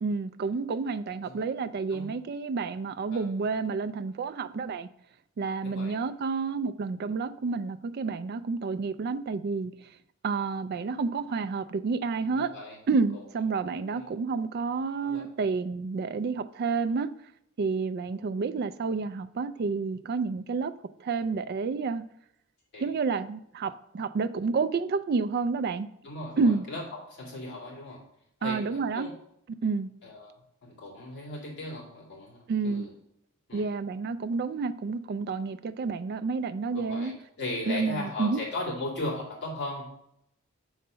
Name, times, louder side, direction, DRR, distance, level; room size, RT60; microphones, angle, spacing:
voice 1, 0.0-4.9 5.4-9.7 10.2-12.5 12.9-17.1 17.6-20.7 21.0-22.0 22.8-25.9 26.4-26.6 28.4-29.1 29.6-29.9 32.5-32.9 33.5-37.1 37.7-38.4, right 4 dB, 45° right, 0.3 m, -29 dB
voice 2, 5.6-6.0 12.3-12.8 13.1-13.2 13.9-14.1 15.0-15.2 22.7-22.9 26.0-26.8 27.1-28.0 28.4-29.1 30.0-30.3 30.6-32.9 33.5-33.6 36.7-39.9, left 2 dB, 50° left, 2.5 m, -37 dB
6.5 x 4.0 x 5.5 m
head